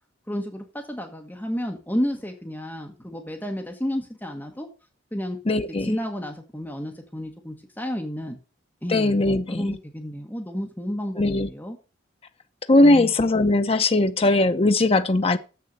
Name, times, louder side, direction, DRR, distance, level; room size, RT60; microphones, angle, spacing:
voice 1, 0.3-4.7 5.1-5.4 5.8-8.4 8.8-11.8 12.8-13.1, equal, 10° left, 1.3 m, -31 dB
voice 2, 5.5-6.0 8.9-9.8 11.2-11.5 12.7-15.4, left 2 dB, 30° left, 0.6 m, -19 dB
7.5 x 6.8 x 6.4 m
head